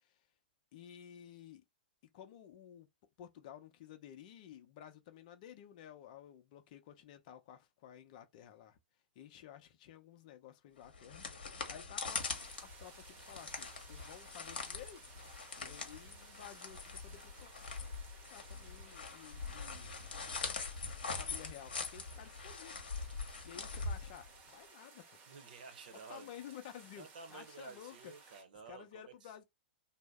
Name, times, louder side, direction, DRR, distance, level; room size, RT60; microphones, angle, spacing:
voice 1, 0.7-1.6 2.1-2.9 3.2-8.8 9.2-12.4 12.6-15.1 15.6-17.5 18.3-20.0 21.1-22.9 23.4-25.2 26.1-28.1 28.7-29.4, left 10 dB, 50° left, 0.6 m, -53 dB
sound 1, 10.8-24.6, left 4 dB, 80° left, 0.9 m, -43 dB
sound 2, 12.1-28.4, right 4 dB, 30° right, 0.8 m, -59 dB
voice 2, 25.3-26.3 27.0-29.3, right 5 dB, 65° right, 0.8 m, -52 dB
2.7 x 2.1 x 3.4 m
hypercardioid pair, 110°, 5 cm